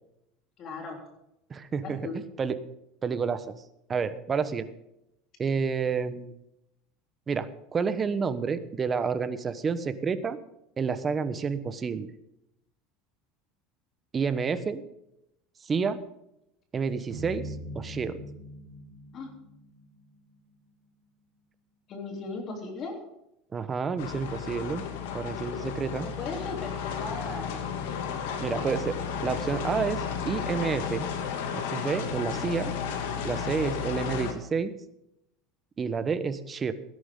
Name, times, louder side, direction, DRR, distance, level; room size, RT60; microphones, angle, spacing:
voice 1, 0.6-1.0 1.8-2.2 19.1-19.3 21.9-23.0 26.0-27.7 28.1-28.7, left 3 dB, 40° left, 2 dB, 3.4 m, -38 dB
voice 2, 1.5-2.6 3.0-3.5 3.9-4.7 5.4-6.3 7.3-10.4 10.8-12.1 14.1-14.8 15.6-16.0 16.7-18.2 23.5-24.8 25.1-26.1 28.4-28.9 29.2-31.1 31.5-32.7 33.2-34.7 35.8-36.7, right 5 dB, 25° right, 12 dB, 1.1 m, -29 dB
sound 1, 17.1-20.3, equal, 60° right, 5.9 m, -41 dB
sound 2, 24.0-34.3, left 7 dB, 85° left, 2.3 m, -33 dB
17.0 x 11.0 x 3.8 m, 0.83 s
supercardioid pair, 125°, 0 cm